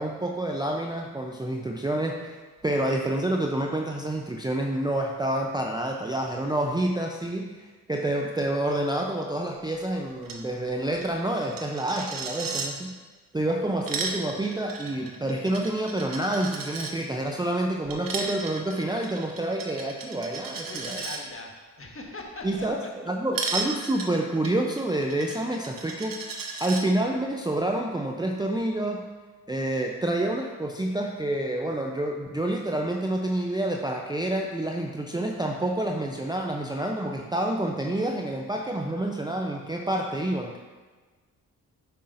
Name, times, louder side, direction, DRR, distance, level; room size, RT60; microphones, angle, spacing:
voice 1, 0.0-2.4 2.6-13.0 13.3-21.0 22.4-22.8 23.1-26.2 26.6-29.1 29.5-40.6, right 1 dB, 10° right, 0 dB, 0.6 m, -28 dB
Coin (dropping), 10.2-10.4 10.7-10.8 11.0-12.7 13.6-16.9 17.9-21.2 23.3-26.8, right 4 dB, 55° right, 1.0 m, -35 dB
voice 2, 20.6-22.7, left 2 dB, 30° left, 1 dB, 1.4 m, -41 dB
8.4 x 5.4 x 2.6 m, 1.3 s
supercardioid pair, 45°, 41 cm